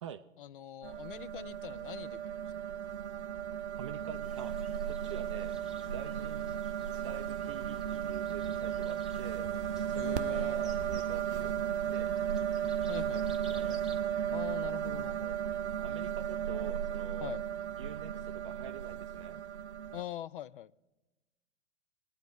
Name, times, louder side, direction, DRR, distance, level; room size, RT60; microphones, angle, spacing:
voice 1, 0.4-2.4 6.0-6.1 10.0-10.6 11.4-11.5 12.9-13.2 14.3-15.3 17.2-17.4 19.9-20.7, left 11 dB, 45° left, 21 dB, 0.4 m, -43 dB
sound 1, 0.8-20.0, right 9 dB, 65° right, 0.6 m, -35 dB
voice 2, 3.8-4.6 4.8-5.6 5.9-6.5 7.0-9.5 9.8-12.1 12.9-13.9 15.8-17.3 17.8-19.4, right 9 dB, 25° right, 9 dB, 0.4 m, -46 dB
sound 2, 4.2-14.0, right 3 dB, ahead, 1.1 m, -56 dB
sound 3, 9.0-13.4, equal, 15° left, 1.8 m, -58 dB
20.5 x 9.5 x 3.5 m, 1.1 s
figure-of-eight pair, 105°, 37 cm